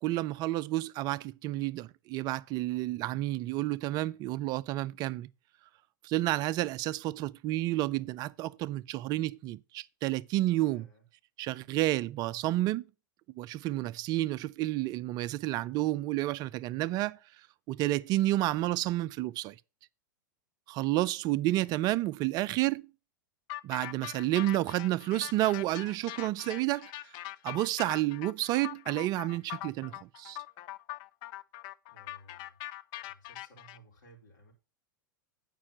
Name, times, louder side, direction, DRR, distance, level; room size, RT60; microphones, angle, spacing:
voice 1, 0.0-5.3 6.0-10.9 11.4-12.8 13.4-17.2 17.7-19.6 20.7-22.9 23.6-26.9 27.4-30.4, right 16 dB, 40° right, 0.5 m, -30 dB
voice 2, 10.6-11.0 21.6-21.7 31.9-32.6 33.0-34.5, right 1 dB, 65° left, 4.1 m, -58 dB
sound 1, 23.5-33.8, left 16 dB, 40° left, 0.5 m, -42 dB
8.7 x 5.4 x 5.9 m
figure-of-eight pair, 95°, 11 cm